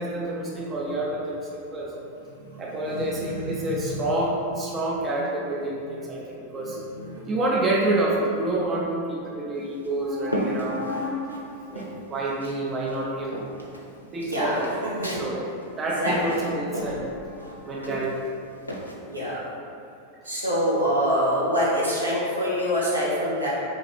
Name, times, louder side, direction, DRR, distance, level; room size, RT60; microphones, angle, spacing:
voice 1, 0.0-1.9 2.6-13.4 14.1-14.7 15.0-15.4 15.8-18.1, right 1 dB, 25° right, -4 dB, 0.5 m, -28 dB
voice 2, 2.3-3.7 4.0-4.1 6.6-7.3 14.3-14.6 14.8-15.2 16.0-16.4 19.0-19.5 20.2-23.5, equal, 80° right, -8 dB, 1.0 m, -26 dB
sound 1, 9.6-11.4 11.8-12.6 12.9-18.9, equal, 85° left, 0.4 m, -34 dB
3.3 x 2.4 x 4.1 m, 2.6 s
figure-of-eight pair, 90°, 0 cm